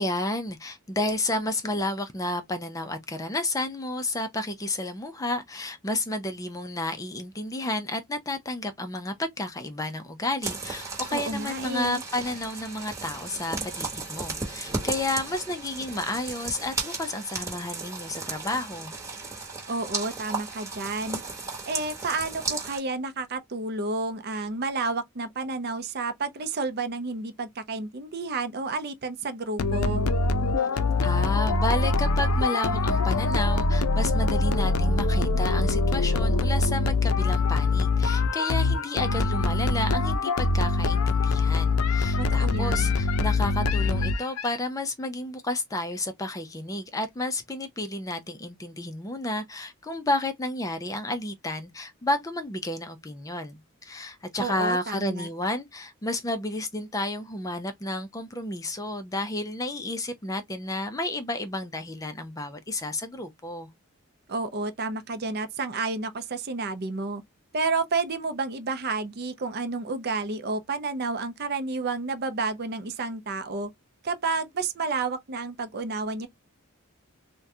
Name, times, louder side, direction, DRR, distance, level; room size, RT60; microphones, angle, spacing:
voice 1, 0.0-19.0 30.6-63.7, left 2 dB, 15° left, 0.4 m, -31 dB
sound 1, 10.4-22.8, right 4 dB, 15° right, 1.0 m, -35 dB
voice 2, 11.1-12.0 19.7-21.2 21.7-30.0 42.2-43.0 54.4-55.3 64.3-67.2 67.5-73.7 74.0-76.3, right 3 dB, 50° right, 0.6 m, -30 dB
sound 2, 29.6-44.5, left 3 dB, 80° left, 0.5 m, -24 dB
3.6 x 2.2 x 2.7 m
head